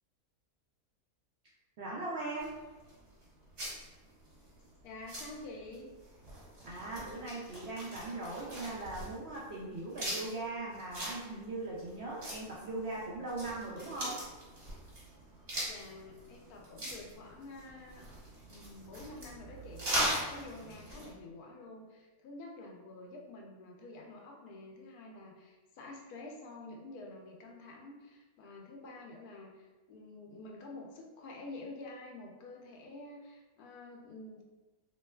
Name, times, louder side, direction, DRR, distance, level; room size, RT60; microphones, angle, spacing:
voice 1, 1.8-2.5 6.6-14.2, right 2 dB, 65° right, -5 dB, 0.6 m, -39 dB
sound 1, 2.4-21.1, right 1 dB, 45° right, 1.2 m, -41 dB
voice 2, 4.8-5.9 15.6-18.1 18.5-34.4, left 2 dB, 80° left, 0 dB, 1.1 m, -48 dB
3.1 x 2.9 x 2.2 m, 1.2 s
omnidirectional pair, 1.6 m